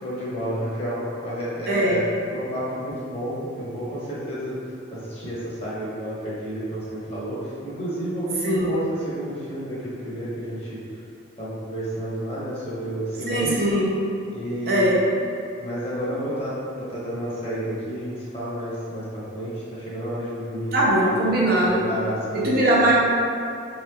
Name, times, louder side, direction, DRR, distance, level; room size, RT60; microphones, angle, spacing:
voice 1, 0.0-2.0 2.3-4.5 4.9-7.4 7.6-10.8 11.4-13.6 14.3-15.0 15.6-21.1 21.6-22.7, equal, 30° left, -9 dB, 1.0 m, -30 dB
voice 2, 1.7-2.0 8.4-8.7 13.3-13.9 14.7-15.0 20.7-21.9 22.3-22.9, right 1 dB, 50° right, -5 dB, 0.6 m, -20 dB
4.4 x 3.1 x 2.3 m, 2.5 s
head